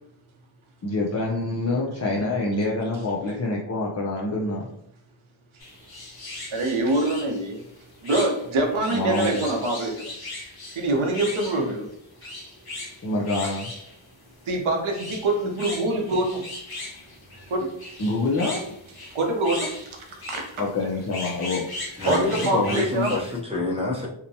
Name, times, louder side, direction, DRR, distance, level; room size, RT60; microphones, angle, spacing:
voice 1, 0.8-4.7 8.9-9.4 13.0-13.7 18.0-18.7 20.6-21.7 22.5-22.8, left 2 dB, 35° left, -3 dB, 0.5 m, -26 dB
sound 1, 5.6-23.4, left 2 dB, 50° left, 0.9 m, -38 dB
voice 2, 6.5-7.6 8.0-10.1 10.7-11.9 12.2-12.3 13.4-13.5 14.5-16.4 16.8-16.9 17.5-17.9 19.1-20.5 22.0-23.2, right 2 dB, 75° right, 1 dB, 0.8 m, -25 dB
voice 3, 22.0-24.1, left 2 dB, 10° right, -3 dB, 0.7 m, -27 dB
2.7 x 2.1 x 2.6 m, 0.72 s
wide cardioid pair, 50°, 48 cm